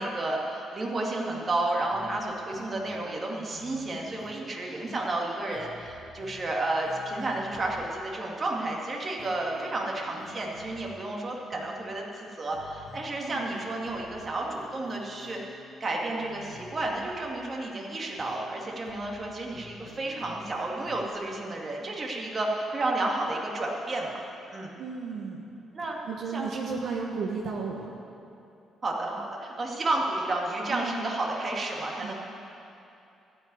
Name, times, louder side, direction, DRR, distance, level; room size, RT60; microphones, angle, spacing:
voice 1, 0.0-15.4 15.8-24.2 24.5-24.7 25.7-26.0 26.3-26.5 28.8-32.1, right 2 dB, 35° right, -1 dB, 2.2 m, -31 dB
sound 1, 1.9-2.2 2.5-3.2 3.5-4.5 4.9-5.2 5.5-6.5 6.8-7.9 9.2-10.9 11.5-11.9 12.5-13.2 13.5-15.5 15.9-17.2 18.2-18.5 18.9-19.2 19.5-21.1, left 3 dB, 70° left, 1.4 m, -49 dB
voice 2, 13.2-13.5 24.8-25.5 26.1-27.9 30.7-31.1 31.9-32.1, right 4 dB, 70° right, -2 dB, 1.3 m, -34 dB
14.0 x 5.4 x 9.6 m, 2.8 s
cardioid pair, 90°, 0 cm